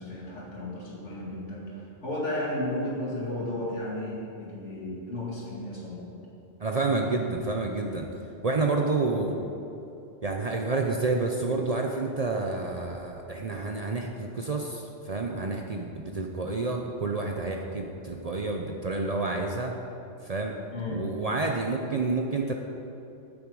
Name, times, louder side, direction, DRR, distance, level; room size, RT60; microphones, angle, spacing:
voice 1, 0.0-6.1 20.7-21.0, left 1 dB, 80° left, -4 dB, 2.4 m, -34 dB
voice 2, 6.6-8.1 8.4-9.4 10.2-19.8 20.2-20.6 20.9-22.5, right 3 dB, 45° right, 2 dB, 0.6 m, -29 dB
9.0 x 8.8 x 4.7 m, 2.9 s
omnidirectional pair, 1.2 m